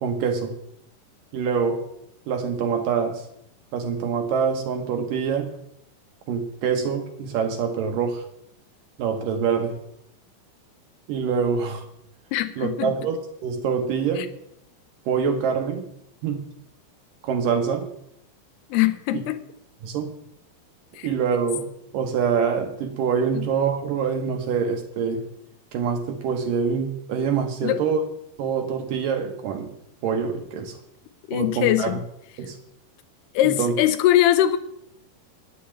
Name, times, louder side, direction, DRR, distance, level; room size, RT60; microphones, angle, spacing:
voice 1, 0.0-0.5 1.3-1.8 2.3-3.2 3.7-5.5 6.3-8.2 9.0-9.8 11.1-11.9 12.6-13.2 13.4-14.3 15.1-15.9 16.2-16.4 17.2-17.9 19.8-20.1 21.0-21.7 21.9-25.2 25.7-28.0 28.4-29.7 30.0-30.8 31.3-31.9 32.4-32.6 33.4-33.7, right 6 dB, 70° right, 2.3 m, -25 dB
voice 2, 12.3-12.9 14.2-14.3 18.7-19.4 21.0-21.1 23.3-23.5 27.6-27.8 31.3-32.0 33.3-34.6, left 13 dB, 80° left, 2.7 m, -21 dB
9.9 x 7.2 x 8.7 m
omnidirectional pair, 4.7 m